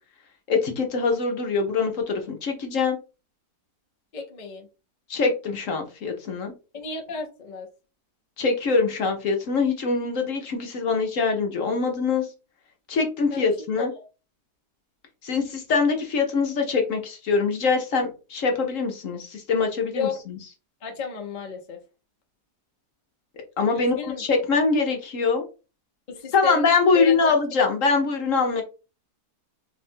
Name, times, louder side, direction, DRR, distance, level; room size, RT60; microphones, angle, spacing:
voice 1, 0.5-3.0 5.1-6.5 8.4-12.3 12.9-13.9 15.2-20.4 23.6-25.4 26.3-28.6, left 4 dB, 60° left, 4 dB, 1.1 m, -23 dB
voice 2, 4.1-4.7 6.7-7.7 13.3-14.0 19.9-20.2 20.8-21.8 23.7-24.2 26.1-26.7 26.9-27.3, left 6 dB, 40° left, 3 dB, 0.7 m, -32 dB
4.1 x 2.5 x 4.4 m, 0.32 s
omnidirectional pair, 1.7 m